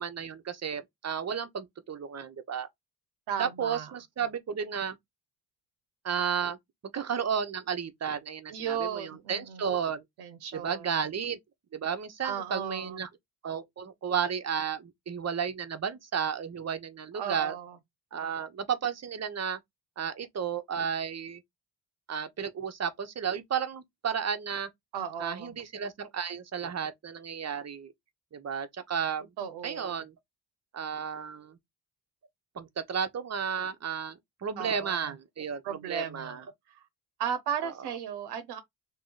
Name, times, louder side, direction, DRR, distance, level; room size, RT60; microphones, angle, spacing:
voice 1, 0.0-2.7 3.4-5.0 6.0-6.6 6.9-10.0 10.5-11.4 11.7-13.1 13.4-17.5 18.1-19.6 20.0-21.4 22.1-24.7 25.2-27.9 28.3-29.3 29.6-30.1 30.7-31.6 32.5-36.4 37.6-37.7, right 7 dB, 40° right, 1.0 m, -33 dB
voice 2, 3.3-3.9 8.5-9.7 10.2-10.9 12.2-13.0 17.1-17.8 24.9-25.6 29.4-30.0 34.6-35.1 35.6-36.4 36.7-36.8 37.2-38.6, right 8 dB, 85° right, 1.0 m, -35 dB
3.1 x 3.0 x 3.8 m
supercardioid pair, 65°, 38 cm